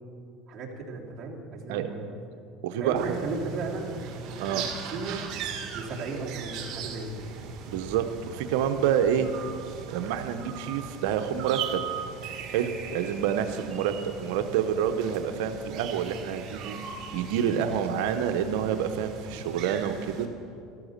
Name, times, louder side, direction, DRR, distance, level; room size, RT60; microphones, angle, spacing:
voice 1, 0.5-2.1 2.8-4.6 4.9-5.2 5.7-7.2, right 3 dB, 35° right, -3 dB, 3.4 m, -35 dB
voice 2, 2.6-3.2 4.4-4.7 7.7-9.3 9.9-11.8 12.5-16.8 17.1-20.3, right 8 dB, 80° right, 8 dB, 0.9 m, -28 dB
sound 1, 3.0-20.3, right 7 dB, 55° right, 1.9 m, -39 dB
13.5 x 13.5 x 6.6 m, 2.5 s
supercardioid pair, 110°, 0 cm